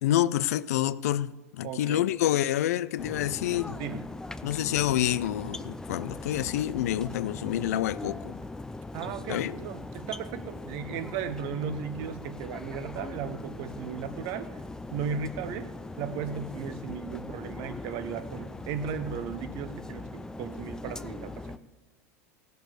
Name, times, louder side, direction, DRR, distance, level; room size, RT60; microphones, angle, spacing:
voice 1, 0.0-3.8 4.4-8.4 9.3-9.6, left 12 dB, 75° left, 0.4 m, -28 dB
voice 2, 1.6-2.1 3.7-4.1 8.9-14.6 14.9-15.7 16.0-21.6, right 7 dB, 55° right, 1.0 m, -36 dB
sound 1, 3.0-21.6, left 2 dB, 5° left, 0.5 m, -40 dB
15.5 x 6.7 x 6.5 m
hypercardioid pair, 95°, 8 cm